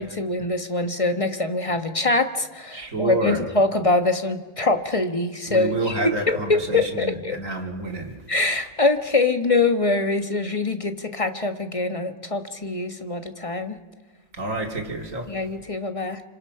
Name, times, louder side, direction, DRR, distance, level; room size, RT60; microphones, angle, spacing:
voice 1, 0.0-7.4 8.3-13.8 15.3-16.2, left 3 dB, 25° left, 8 dB, 1.2 m, -24 dB
voice 2, 2.7-3.4 5.5-8.2 14.4-15.3, right 2 dB, 85° right, 3 dB, 2.9 m, -28 dB
27.5 x 26.0 x 5.7 m, 1.3 s
omnidirectional pair, 1.3 m